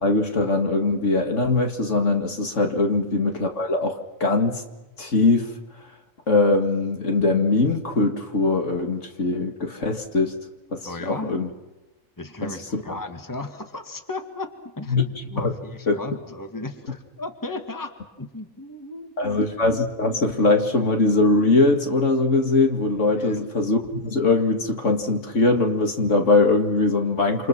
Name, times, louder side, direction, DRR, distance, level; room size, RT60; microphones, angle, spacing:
voice 1, 0.0-4.6 5.0-5.5 6.3-10.4 10.7-11.5 12.4-12.8 14.9-15.0 15.4-15.5 15.9-16.0 19.2-27.5, left 3 dB, 60° left, 4 dB, 2.5 m, -21 dB
voice 2, 10.9-11.4 12.2-19.4 23.2-23.4, left 2 dB, 15° left, 6 dB, 2.0 m, -35 dB
28.0 x 27.0 x 6.1 m, 1.0 s
omnidirectional pair, 1.4 m